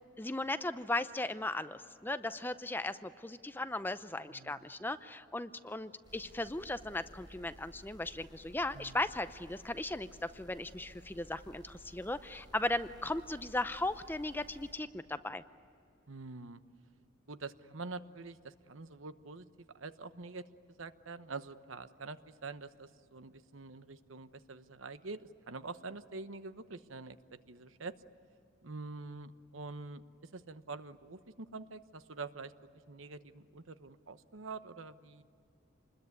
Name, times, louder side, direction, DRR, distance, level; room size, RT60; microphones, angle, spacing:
voice 1, 0.2-15.4, left 2 dB, 10° left, 11 dB, 0.6 m, -37 dB
voice 2, 4.3-4.7 8.7-9.0 16.1-16.6 17.3-19.5 19.7-20.5 20.8-27.9 28.6-32.5 32.9-35.2, right 3 dB, 80° right, 11 dB, 1.0 m, -46 dB
sound 1, 6.0-14.7, equal, 20° right, 6.8 m, -56 dB
27.5 x 21.0 x 9.6 m, 2.5 s
head